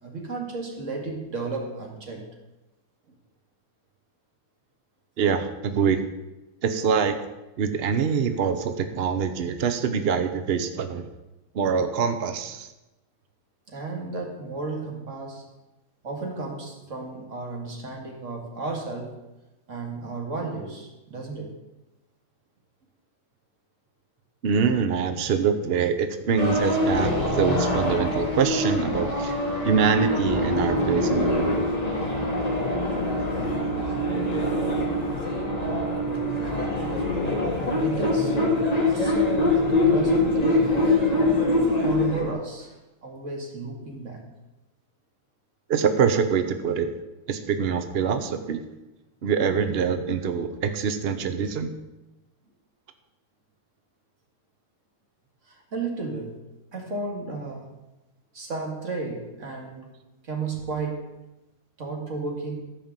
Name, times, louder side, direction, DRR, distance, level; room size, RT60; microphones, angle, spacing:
voice 1, 0.0-2.3 3.1-3.2 13.7-15.5 16.0-19.2 19.7-21.6 37.8-38.4 38.8-40.7 41.8-44.3 55.5-57.8 58.3-61.1 61.8-62.6, right 3 dB, 40° right, 1 dB, 2.2 m, -33 dB
voice 2, 5.2-6.0 6.6-7.2 7.6-11.1 11.5-12.7 24.4-29.4 29.6-31.7 45.7-46.9 47.3-48.6 49.2-51.7, right 6 dB, 85° right, 8 dB, 0.5 m, -24 dB
sound 1, 26.4-42.3, left 1 dB, 20° left, 1.9 m, -24 dB
13.5 x 5.2 x 7.4 m, 1.0 s
omnidirectional pair, 2.2 m